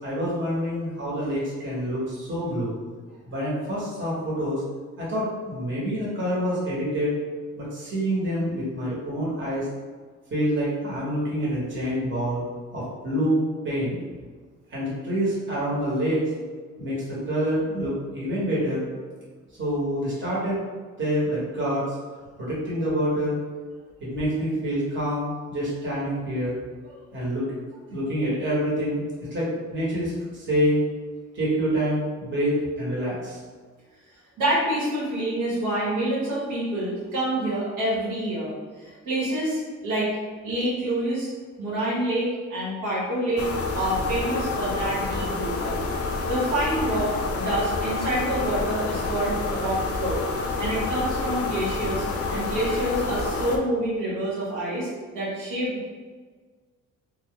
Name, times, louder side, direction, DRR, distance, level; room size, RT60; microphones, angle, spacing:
voice 1, 0.0-2.8 3.2-4.6 5.0-7.1 7.6-9.7 10.3-12.4 12.7-14.0 14.7-16.3 16.8-18.8 19.6-20.6 21.0-21.8 22.4-23.4 24.0-26.6 27.1-27.5 27.9-29.0 29.3-30.8 31.3-33.4, equal, 40° right, -7 dB, 1.4 m, -26 dB
voice 2, 34.4-38.5 38.8-40.2 40.4-41.3 41.6-43.5 43.7-45.9 46.3-50.2 50.6-52.0 52.3-54.9 55.1-55.9, right 1 dB, 80° right, -8 dB, 1.3 m, -27 dB
sound 1, 43.4-53.6, left 3 dB, 50° left, 0.5 m, -28 dB
2.4 x 2.4 x 3.6 m, 1.5 s
cardioid pair, 90°, 30 cm